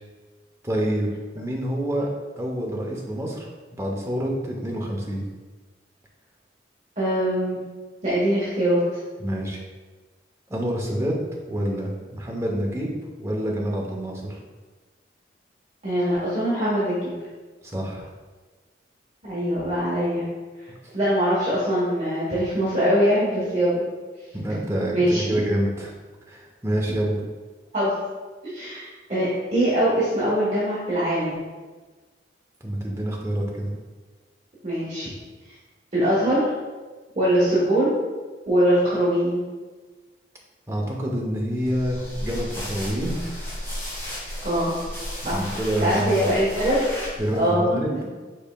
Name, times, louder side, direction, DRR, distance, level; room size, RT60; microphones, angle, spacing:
voice 1, 0.6-2.1 2.4-5.3 9.2-9.6 10.5-11.1 11.5-12.9 13.2-14.4 17.6-18.1 24.3-25.9 26.3-27.2 32.6-33.7 40.7-43.2 45.2-46.3 47.2-48.1, right 1 dB, 15° right, -2 dB, 0.6 m, -27 dB
voice 2, 7.0-7.6 8.0-9.0 15.8-17.1 19.2-20.2 20.9-23.8 24.9-25.4 27.7-27.9 28.5-31.4 34.6-35.1 35.9-36.5 37.2-37.9 38.5-39.4 44.4-44.7 45.2-45.4 45.8-46.9 47.4-48.0, equal, 35° right, -9 dB, 1.1 m, -22 dB
sound 1, 41.6-47.5, equal, 15° left, 1.4 m, -34 dB
5.3 x 4.2 x 2.2 m, 1.3 s
head